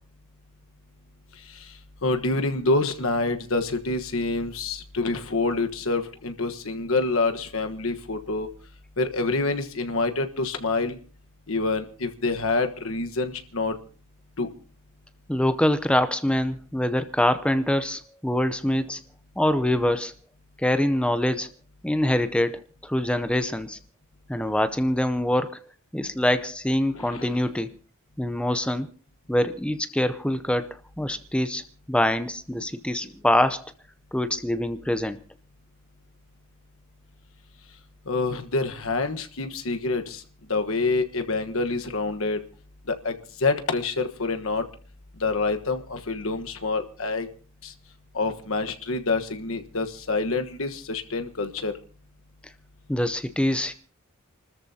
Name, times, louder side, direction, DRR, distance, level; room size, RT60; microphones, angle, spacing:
voice 1, 2.0-8.5 9.0-11.0 11.5-13.7 14.4-14.5 26.9-27.4 38.1-40.2 40.5-42.4 42.9-44.6 45.2-47.3 47.6-47.7 48.1-51.7, left 3 dB, 65° left, 1.3 m, -27 dB
voice 2, 15.3-19.0 19.4-20.1 20.6-21.5 21.8-23.8 24.3-25.6 25.9-27.7 28.2-28.9 29.3-30.7 31.0-31.6 31.9-33.7 34.1-35.2 52.9-53.7, left 1 dB, 5° left, 0.6 m, -24 dB
29.5 x 13.5 x 2.8 m
head